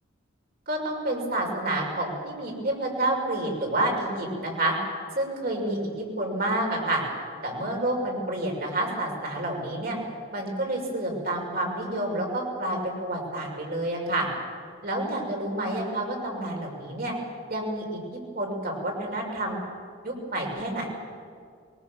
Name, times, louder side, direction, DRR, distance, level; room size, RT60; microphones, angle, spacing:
voice 1, 0.7-4.7 5.1-7.0 7.4-10.0 10.3-14.3 14.8-17.1 17.5-18.0 18.3-19.6 20.0-20.9, right 1 dB, 45° right, 0 dB, 6.1 m, -29 dB
24.5 x 23.0 x 7.3 m, 2.1 s
head